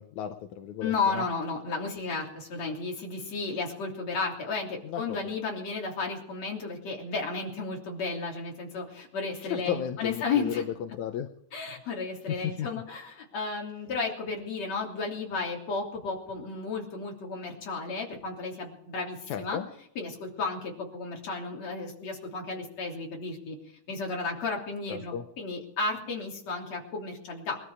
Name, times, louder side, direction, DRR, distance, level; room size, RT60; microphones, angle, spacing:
voice 1, 0.0-1.2 4.8-5.2 9.4-11.3 12.3-12.7 19.3-19.7 24.9-25.2, left 9 dB, 85° left, 7 dB, 2.3 m, -34 dB
voice 2, 0.8-10.6 11.5-19.6 20.0-23.6 23.9-27.6, left 4 dB, 65° left, -1 dB, 4.4 m, -33 dB
21.0 x 13.0 x 5.0 m, 0.71 s
omnidirectional pair, 3.4 m